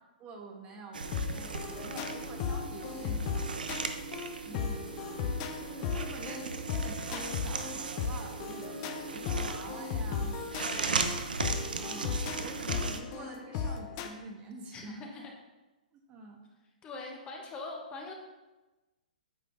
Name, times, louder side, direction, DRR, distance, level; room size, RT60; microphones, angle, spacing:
voice 1, 0.2-4.1 4.5-5.2 5.6-10.9 11.8-15.0 15.9-16.4, right 3 dB, 25° right, 1 dB, 1.1 m, -47 dB
sound 1, 0.9-13.0, right 4 dB, 80° right, 0.7 m, -37 dB
sound 2, 1.1-14.1, left 6 dB, 40° left, 0.7 m, -36 dB
voice 2, 4.5-5.0 10.6-11.0 14.7-15.3 16.8-18.1, left 3 dB, 20° left, 0 dB, 1.1 m, -43 dB
8.6 x 6.3 x 2.6 m, 1.1 s
hypercardioid pair, 125°, 5 cm